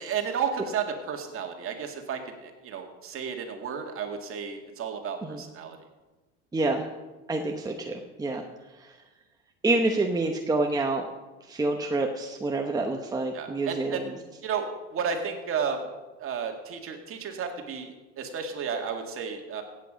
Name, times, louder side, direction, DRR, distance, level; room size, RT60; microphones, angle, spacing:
voice 1, 0.0-5.8 13.3-14.1 14.4-15.9 16.2-19.6, right 6 dB, 40° right, 3 dB, 2.2 m, -32 dB
voice 2, 6.5-6.8 7.3-7.9 8.2-8.4 8.8-8.9 9.6-11.1 11.5-14.1, right 2 dB, 10° right, 2 dB, 1.0 m, -27 dB
16.0 x 8.7 x 5.1 m, 1.2 s
supercardioid pair, 110°, 33 cm